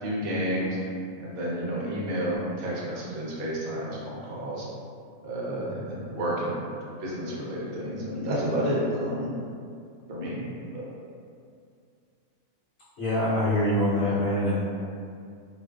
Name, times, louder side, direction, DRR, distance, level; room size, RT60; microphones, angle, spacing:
voice 1, 0.0-0.8 1.2-4.7 5.2-6.6 7.0-9.3 10.1-10.5 10.7-10.9, equal, 60° right, -6 dB, 0.6 m, -30 dB
voice 2, 13.0-14.6, left 1 dB, 70° left, -12 dB, 1.0 m, -24 dB
2.4 x 2.3 x 2.2 m, 2.3 s
omnidirectional pair, 1.4 m